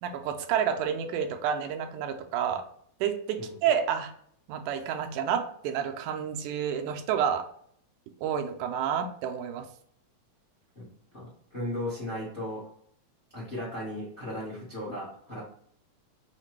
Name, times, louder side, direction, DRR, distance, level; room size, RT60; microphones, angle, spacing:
voice 1, 0.0-2.6 3.0-4.1 4.5-7.5 8.2-9.7, right 8 dB, 80° right, 5 dB, 2.0 m, -29 dB
voice 2, 11.1-12.6 13.3-15.4, left 1 dB, 50° left, -6 dB, 0.6 m, -36 dB
5.7 x 2.2 x 3.1 m, 0.63 s
omnidirectional pair, 3.6 m